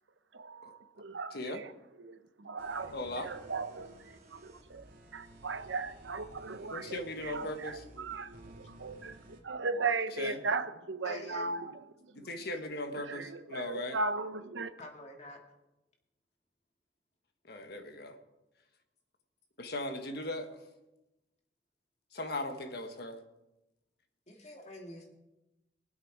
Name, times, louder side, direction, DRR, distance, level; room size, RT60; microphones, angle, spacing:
voice 1, 0.3-1.7 2.0-4.9 5.1-12.4 13.0-14.7, right 4 dB, 85° right, 10 dB, 0.9 m, -37 dB
sound 1, 2.6-9.4, right 1 dB, 50° right, 2.7 m, -55 dB
voice 2, 2.9-3.3 6.7-7.8 10.2-10.4 12.1-14.0 17.4-18.2 19.6-20.6 22.1-23.2, left 1 dB, 60° left, 6 dB, 1.4 m, -38 dB
voice 3, 11.0-11.5 14.8-15.4 24.3-25.1, left 1 dB, 40° left, 2 dB, 2.3 m, -46 dB
22.5 x 8.2 x 4.7 m, 0.97 s
head